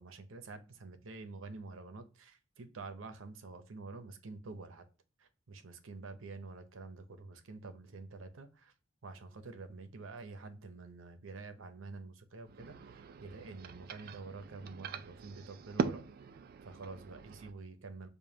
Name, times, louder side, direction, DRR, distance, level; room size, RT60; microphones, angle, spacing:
voice 1, 0.0-4.9 5.2-8.7 9.0-16.0 16.6-18.1, right 3 dB, 85° right, 0.6 m, -48 dB
sound 1, 12.4-17.5, right 5 dB, 50° right, 0.3 m, -41 dB
5.1 x 2.2 x 2.7 m
head